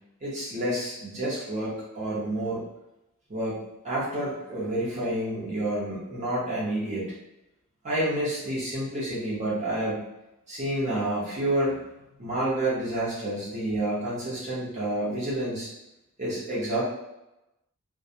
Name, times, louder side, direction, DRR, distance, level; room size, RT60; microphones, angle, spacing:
voice 1, 0.2-2.6 3.3-7.1 7.8-10.0 10.5-11.7 12.2-15.7 16.2-16.8, right 1 dB, 30° right, -8 dB, 0.8 m, -29 dB
2.3 x 2.1 x 2.6 m, 0.92 s
head